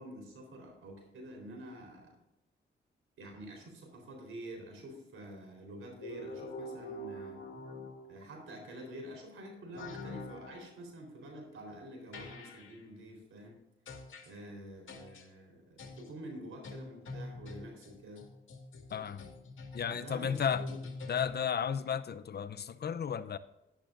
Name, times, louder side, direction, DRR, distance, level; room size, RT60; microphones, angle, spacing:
voice 1, 0.0-2.2 3.2-7.4 8.1-13.6 14.2-18.3 19.0-19.1 19.8-20.9, right 1 dB, 85° right, 2 dB, 4.0 m, -48 dB
sound 1, 6.0-8.4 9.7-10.7 12.1-12.8 13.9-14.3 14.9-15.2 15.8-16.1 16.6-21.7, left 2 dB, 75° left, 2.0 m, -44 dB
voice 2, 18.9-19.2 19.7-20.7 21.1-23.4, left 7 dB, 50° left, 13 dB, 0.6 m, -33 dB
13.5 x 10.5 x 2.6 m, 0.96 s
cardioid pair, 70°, 21 cm